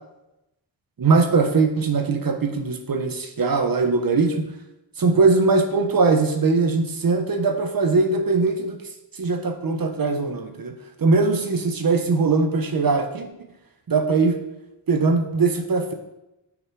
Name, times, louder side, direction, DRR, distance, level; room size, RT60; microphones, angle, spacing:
voice 1, 1.0-4.4 5.0-8.8 9.2-10.7 11.0-13.3 13.9-14.4 14.9-15.9, right 4 dB, 55° right, 6 dB, 1.2 m, -21 dB
9.1 x 6.1 x 4.8 m, 0.91 s
wide cardioid pair, 125°, 42 cm